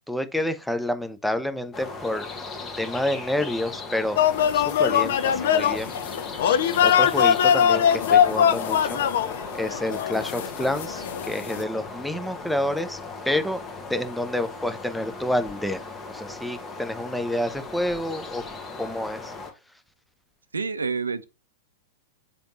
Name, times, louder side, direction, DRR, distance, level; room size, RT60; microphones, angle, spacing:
voice 1, 0.1-2.3 2.8-4.2 4.5-6.0 6.8-9.0 9.5-13.0 13.3-13.6 13.9-15.8 16.1-18.4 18.8-19.3, left 1 dB, ahead, 0.5 m, -28 dB
sound 1, 1.7-19.5, left 3 dB, 20° left, 1.2 m, -38 dB
sound 2, 4.2-11.6, left 9 dB, 60° left, 0.4 m, -22 dB
voice 2, 20.5-21.3, right 5 dB, 80° right, 0.5 m, -28 dB
3.4 x 2.8 x 3.8 m
figure-of-eight pair, 100°, 0 cm